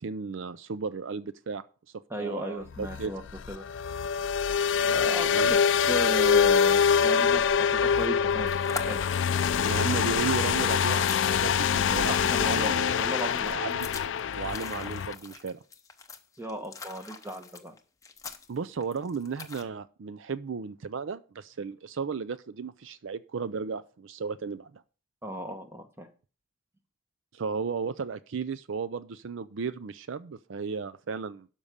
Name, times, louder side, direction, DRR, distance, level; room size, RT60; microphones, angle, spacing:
voice 1, 0.0-1.6 1.9-3.1 5.2-5.5 9.6-12.1 12.4-13.0 13.4-13.9 14.4-15.6 18.5-24.8 27.3-31.5, right 5 dB, 65° right, 14 dB, 0.5 m, -34 dB
voice 2, 2.1-3.2 3.5-3.6 4.9-5.6 5.9-7.4 7.7-9.0 12.0-13.6 16.4-17.7 25.2-26.1, equal, 10° right, 5 dB, 1.3 m, -36 dB
sound 1, 2.7-15.1, left 7 dB, 65° left, 0.4 m, -25 dB
sound 2, 8.1-19.6, left 4 dB, 15° left, 0.8 m, -44 dB
12.5 x 5.4 x 5.0 m, 0.37 s
head